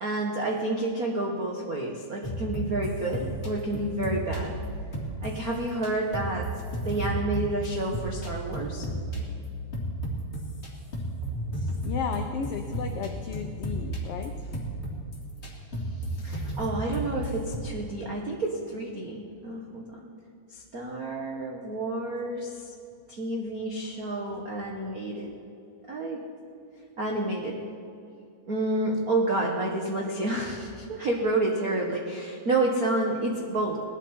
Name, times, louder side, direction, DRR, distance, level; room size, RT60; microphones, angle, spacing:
voice 1, 0.0-4.5 5.2-6.4 6.8-8.8 16.2-19.8 20.5-22.6 23.1-25.3 25.9-26.2 27.0-27.6 28.5-33.8, right 2 dB, 70° right, -1 dB, 0.8 m, -29 dB
sound 1, 2.2-10.7 10.9-17.6, right 1 dB, 25° left, 2.1 m, -33 dB
voice 2, 11.8-14.5, left 7 dB, 85° left, 5 dB, 1.3 m, -34 dB
19.5 x 11.5 x 4.4 m, 2.5 s
omnidirectional pair, 3.5 m